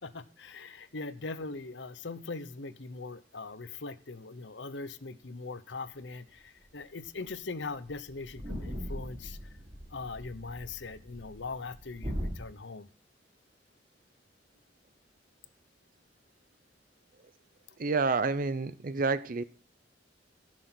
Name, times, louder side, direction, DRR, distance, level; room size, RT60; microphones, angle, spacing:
voice 1, 0.0-9.4 9.9-12.9, left 3 dB, 80° left, 0.9 m, -41 dB
sound 1, 6.7-6.8 7.1-7.2 7.6-7.7 7.9-12.4, equal, 30° right, 6.0 m, -40 dB
voice 2, 17.8-19.4, right 4 dB, 50° right, 0.6 m, -29 dB
15.5 x 6.5 x 5.9 m
head